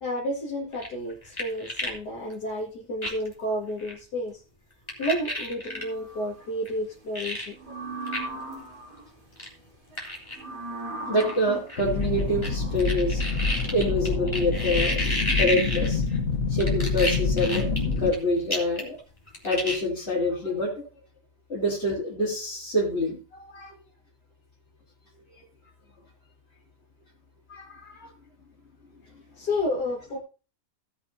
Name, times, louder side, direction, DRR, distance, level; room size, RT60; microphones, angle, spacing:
voice 1, 0.0-4.4 5.0-7.6 29.3-30.2, left 1 dB, 85° left, 2.8 m, -31 dB
sound 1, 0.7-2.0 2.3-2.4 3.0-3.3 3.8-3.9 4.9-5.8 6.7-6.8 7.2-7.5 8.1-8.2 8.5-8.6 9.4-9.5 10.0-10.4 11.2-12.5 12.8-16.2 16.6-18.2 18.5-19.0 19.3-19.8, left 1 dB, 15° left, 3.3 m, -30 dB
sound 2, 5.6-6.4 7.5-9.1 10.3-12.8, right 2 dB, 85° right, 4.2 m, -38 dB
voice 2, 11.1-13.2 13.7-15.0 15.4-16.0 16.5-17.7 18.0-19.0 19.4-20.8 21.5-23.7 27.5-28.1 29.1-29.2, left 1 dB, 40° left, 3.9 m, -26 dB
sound 3, 11.8-18.1, left 4 dB, 55° left, 1.6 m, -27 dB
17.5 x 8.0 x 2.8 m
omnidirectional pair, 1.7 m